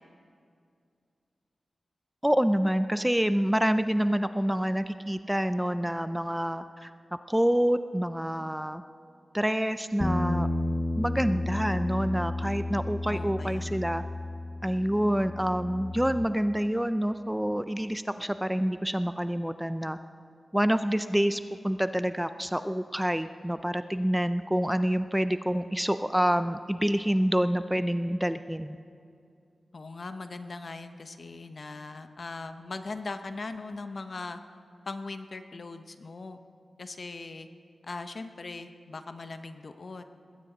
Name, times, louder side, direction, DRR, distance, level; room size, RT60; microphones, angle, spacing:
voice 1, 2.2-6.9 7.3-8.8 9.3-10.5 11.0-14.0 14.6-20.0 20.5-28.8, equal, 5° right, 11 dB, 0.4 m, -27 dB
Bass guitar, 10.0-16.3, left 2 dB, 15° left, 0.8 m, -32 dB
voice 2, 13.1-13.8 29.7-34.4 34.9-36.4 36.8-37.5 37.9-40.0, left 3 dB, 50° left, 8 dB, 0.9 m, -40 dB
20.5 x 16.5 x 3.9 m, 2.4 s
wide cardioid pair, 105°, 0 cm